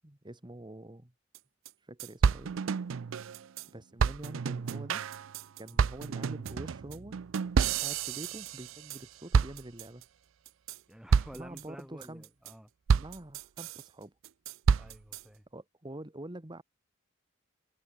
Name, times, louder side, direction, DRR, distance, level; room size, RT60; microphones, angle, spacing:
voice 1, 0.0-1.1 1.8-2.5 3.7-5.0 5.6-7.2 7.5-10.0 11.3-12.2 12.9-14.1 15.5-16.6, right 1 dB, 20° right, 1.5 m, -46 dB
sound 1, 1.3-1.4 1.7-1.8 2.0-3.7 4.0-9.0 9.3-10.0 10.5-10.8 11.1-11.6 12.0-12.5 12.9-13.8 14.2-15.2, right 6 dB, 70° right, 0.4 m, -29 dB
voice 2, 10.9-12.7 14.8-15.5, equal, 5° right, 2.4 m, -50 dB
head